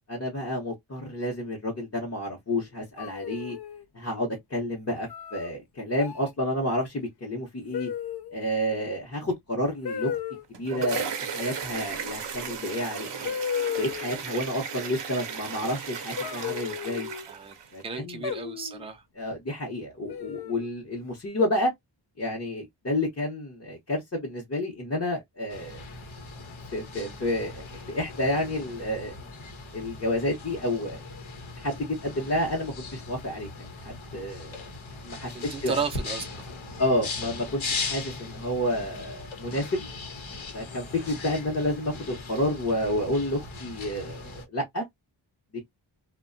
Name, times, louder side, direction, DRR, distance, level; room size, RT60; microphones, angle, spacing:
voice 1, 0.1-3.6 3.9-7.9 8.3-10.2 10.5-13.3 13.8-17.1 17.7-18.3 19.2-21.7 22.2-25.8 26.7-29.1 29.7-31.0 31.6-34.6 35.0-35.8 36.8-39.8 40.5-44.8, left 1 dB, 30° left, 0.9 m, -30 dB
sound 1, 3.0-3.8 5.1-5.5 6.0-6.3 7.7-8.4 9.8-10.4 12.4-12.5 13.2-14.2 16.2-17.3 18.2-18.9 20.1-20.7, left 8 dB, 55° left, 0.6 m, -34 dB
sound 2, 10.3-17.8, right 6 dB, 60° right, 0.7 m, -35 dB
voice 2, 13.0-13.4 17.3-17.5 17.8-19.0 35.3-36.2, right 5 dB, 15° right, 0.5 m, -34 dB
sound 3, 25.5-44.4, left 3 dB, 70° left, 0.9 m, -39 dB
2.6 x 2.2 x 2.5 m
wide cardioid pair, 115°, 48 cm